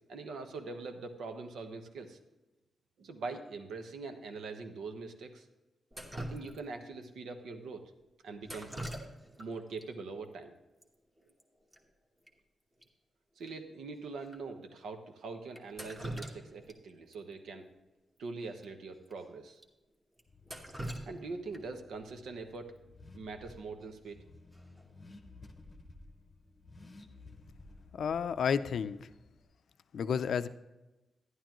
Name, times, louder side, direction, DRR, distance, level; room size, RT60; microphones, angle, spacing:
voice 1, 0.1-2.2 3.0-5.5 6.1-7.9 8.2-8.7 9.4-10.5 13.4-17.7 18.2-19.6 21.1-24.2, right 3 dB, 85° right, 5 dB, 1.2 m, -43 dB
Drip, 5.9-6.9 8.4-9.5 9.8-9.9 10.8-10.9 11.2-11.4 11.7-11.8 12.3-12.4 12.8-12.9 13.5-13.6 14.3-14.4 15.5-16.8 17.1-17.2 18.5-18.6 19.1-19.2 19.6-19.7 20.2-21.8 23.8-24.1 24.5-24.9, right 1 dB, 15° right, 1.2 m, -43 dB
Car / Accelerating revving vroom, 20.3-29.4, left 2 dB, 20° left, 0.9 m, -56 dB
voice 2, 27.9-29.1 29.9-30.5, left 7 dB, 60° left, 12 dB, 0.5 m, -31 dB
11.5 x 11.0 x 3.0 m, 1.0 s
wide cardioid pair, 170°, 0 cm